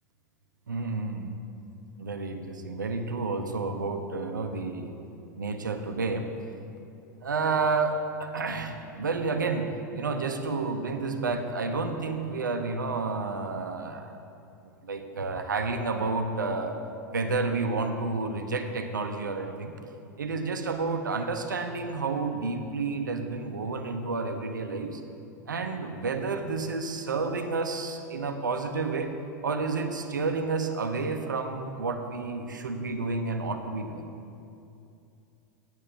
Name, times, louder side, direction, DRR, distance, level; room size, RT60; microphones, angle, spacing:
voice 1, 0.7-1.4 2.0-4.9 5.4-6.3 7.2-14.1 14.8-16.8 17.1-19.7 20.2-25.0 25.5-29.1 29.4-34.1, right 4 dB, 85° right, 7 dB, 0.9 m, -30 dB
9.2 x 8.8 x 6.8 m, 2.7 s
hypercardioid pair, 90°, 10 cm